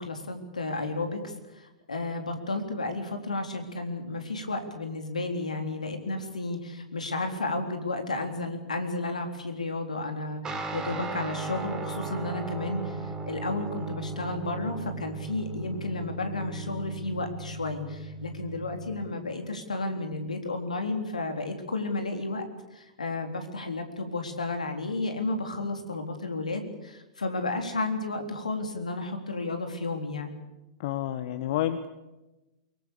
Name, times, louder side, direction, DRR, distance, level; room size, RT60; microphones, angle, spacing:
voice 1, 0.0-22.5 22.7-30.3, left 2 dB, 75° left, 6 dB, 3.6 m, -32 dB
Guitar, 10.4-20.1, right 3 dB, 20° right, 4.2 m, -37 dB
voice 2, 30.8-31.9, left 12 dB, 50° left, 11 dB, 1.3 m, -29 dB
24.0 x 23.0 x 7.0 m, 1.0 s
figure-of-eight pair, 95°, 4 cm